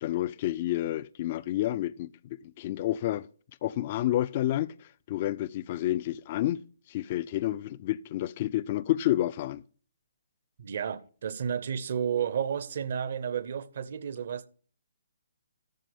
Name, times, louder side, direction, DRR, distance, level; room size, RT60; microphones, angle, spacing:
voice 1, 0.0-3.3 3.6-4.7 5.1-6.6 6.9-9.6, left 14 dB, 35° left, 0.3 m, -29 dB
voice 2, 10.6-14.5, right 8 dB, 50° right, 0.7 m, -32 dB
13.5 x 4.6 x 5.1 m
figure-of-eight pair, 135°, 0 cm